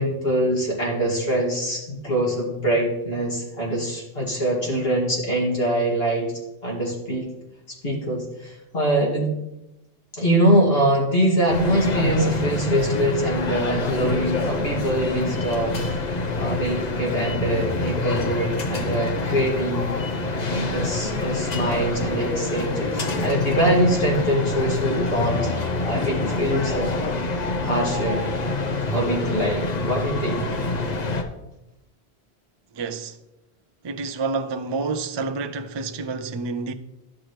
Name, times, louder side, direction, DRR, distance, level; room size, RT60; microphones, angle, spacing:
voice 1, 0.0-6.3 6.6-7.3 7.7-9.3 10.1-25.5 25.8-26.9 27.6-28.3 28.7-30.6, right 1 dB, 60° left, 2.5 m, -24 dB
sound 1, 11.5-31.2, left 2 dB, 40° left, 0.9 m, -26 dB
voice 2, 32.7-33.2 33.8-36.7, right 4 dB, 40° right, 0.4 m, -28 dB
11.5 x 6.1 x 3.2 m
omnidirectional pair, 1.1 m